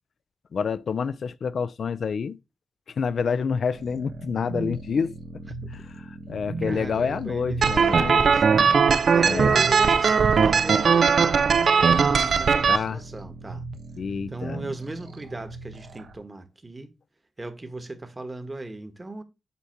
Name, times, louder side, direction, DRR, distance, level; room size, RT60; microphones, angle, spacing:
voice 1, 0.5-2.4 2.9-5.1 6.3-8.2 9.2-9.7 12.7-13.0 14.0-14.6, left 6 dB, 75° left, 0.4 m, -28 dB
sound 1, 3.7-16.2, right 3 dB, 90° right, 0.9 m, -38 dB
voice 2, 6.6-8.4 9.0-13.6 14.3-16.9 17.4-19.2, right 2 dB, 25° right, 1.3 m, -37 dB
sound 2, 7.6-12.8, right 6 dB, 75° right, 0.5 m, -19 dB
8.0 x 2.8 x 5.7 m
wide cardioid pair, 90°, 0 cm